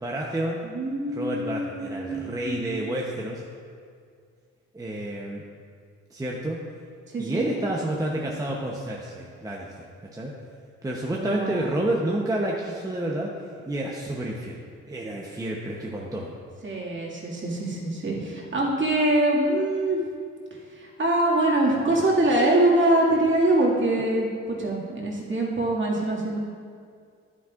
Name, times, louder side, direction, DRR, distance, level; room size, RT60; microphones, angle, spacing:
voice 1, 0.0-0.6 1.1-3.4 4.7-5.4 6.1-6.6 7.2-9.9 10.1-10.3 10.8-13.3 13.7-14.6 14.9-16.3, right 1 dB, 10° right, -2 dB, 0.8 m, -29 dB
voice 2, 0.6-2.9 7.1-7.5 11.1-11.6 16.6-20.0 20.7-26.4, right 1 dB, 40° right, -4 dB, 2.1 m, -24 dB
10.0 x 9.4 x 2.5 m, 2.2 s
cardioid pair, 90°, 30 cm